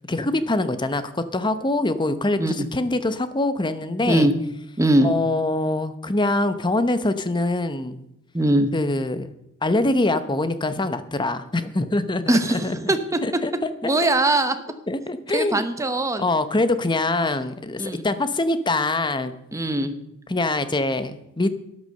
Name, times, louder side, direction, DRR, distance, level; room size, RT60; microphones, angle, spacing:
voice 1, 0.1-4.3 5.0-8.0 8.7-9.3 9.6-12.8 13.2-13.5 14.0-14.1 14.9-15.6 16.2-19.3 20.3-21.5, left 2 dB, 20° left, 12 dB, 0.8 m, -24 dB
voice 2, 4.8-5.1 8.3-8.7 12.3-13.2 13.8-14.5 15.3-16.3 17.8-18.0 19.5-19.9, right 1 dB, 15° right, 9 dB, 1.0 m, -21 dB
12.5 x 9.6 x 6.5 m, 0.82 s
head